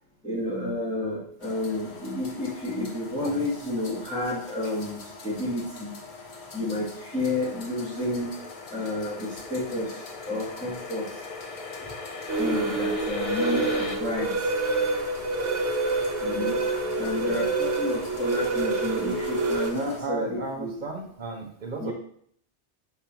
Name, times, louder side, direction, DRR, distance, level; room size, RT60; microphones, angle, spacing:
voice 1, 0.2-5.0 5.2-5.9 6.5-8.4 8.7-11.1 12.4-14.3 15.4-15.8 16.2-20.7 21.8-21.9, left 2 dB, 5° left, -10 dB, 2.4 m, -31 dB
sound 1, 1.4-20.0, left 4 dB, 65° left, 1.2 m, -44 dB
sound 2, 7.1-14.0, left 3 dB, 40° left, 0.6 m, -40 dB
sound 3, 12.3-19.7, right 3 dB, 90° right, 1.2 m, -27 dB
voice 2, 19.7-21.9, right 4 dB, 40° right, 0 dB, 1.2 m, -34 dB
7.1 x 5.5 x 2.9 m, 0.63 s
omnidirectional pair, 1.2 m